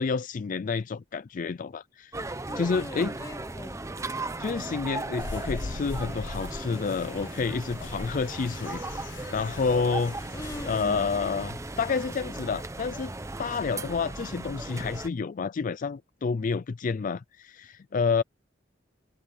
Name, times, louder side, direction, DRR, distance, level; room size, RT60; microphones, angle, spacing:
voice 1, 0.0-2.1 2.6-3.1 4.4-8.8 9.3-10.2 10.7-13.1 13.4-18.2, left 5 dB, 45° left, 0.4 m, -29 dB
sound 1, 2.1-15.1, right 2 dB, 15° right, 0.8 m, -37 dB
voice 2, 2.5-3.8 10.3-11.1, left 1 dB, 20° left, 1.7 m, -41 dB
sound 2, 5.2-11.0, left 3 dB, 80° left, 0.8 m, -41 dB
head